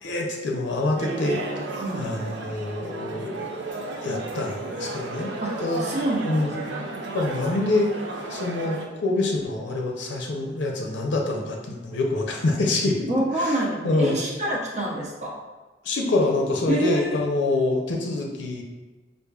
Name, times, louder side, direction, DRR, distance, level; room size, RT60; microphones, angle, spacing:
voice 1, 0.0-1.6 1.9-3.4 4.0-5.3 5.6-5.9 6.2-6.5 7.1-7.9 8.3-13.1 13.4-13.6 13.8-14.2 15.8-18.6, left 2 dB, 80° left, 0 dB, 0.5 m, -25 dB
sound 1, 1.0-8.8, right 2 dB, 75° right, 0.5 m, -34 dB
voice 2, 5.4-6.9 13.1-15.4 16.7-17.1, right 1 dB, 40° right, -3 dB, 0.7 m, -27 dB
4.9 x 2.5 x 2.3 m, 1.2 s
head